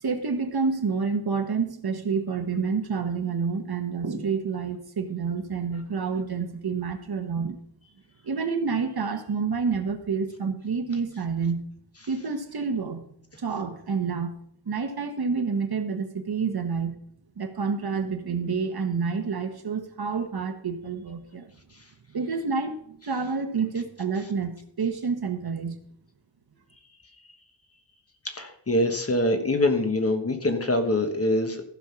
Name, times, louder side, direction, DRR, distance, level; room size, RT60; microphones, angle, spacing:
voice 1, 0.0-7.6 8.2-11.6 12.1-13.0 13.4-14.3 14.7-17.0 17.4-21.5 22.1-25.8, right 5 dB, 50° right, 7 dB, 1.3 m, -28 dB
voice 2, 28.2-31.6, left 1 dB, 30° left, 5 dB, 1.3 m, -24 dB
14.5 x 5.6 x 5.8 m, 0.63 s
wide cardioid pair, 155°, 49 cm